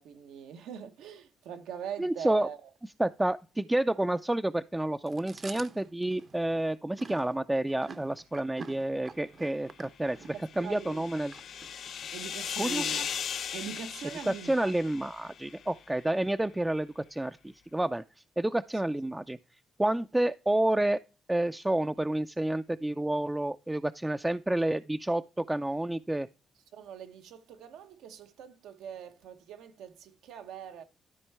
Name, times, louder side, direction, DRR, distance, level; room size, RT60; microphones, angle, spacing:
voice 1, 0.0-2.7 10.2-11.0 12.1-13.1 13.5-14.7 26.7-30.8, right 8 dB, 85° right, 1.0 m, -42 dB
voice 2, 2.0-2.5 3.0-11.3 12.6-12.8 14.3-18.0 18.4-19.4 19.8-21.0 21.3-26.3, right 1 dB, 15° right, 0.4 m, -29 dB
Chewing mastication, 5.1-12.1, right 5 dB, 50° right, 0.8 m, -48 dB
sound 1, 10.1-15.7, left 8 dB, 70° left, 0.5 m, -38 dB
13.0 x 4.4 x 3.3 m
supercardioid pair, 65°, 0 cm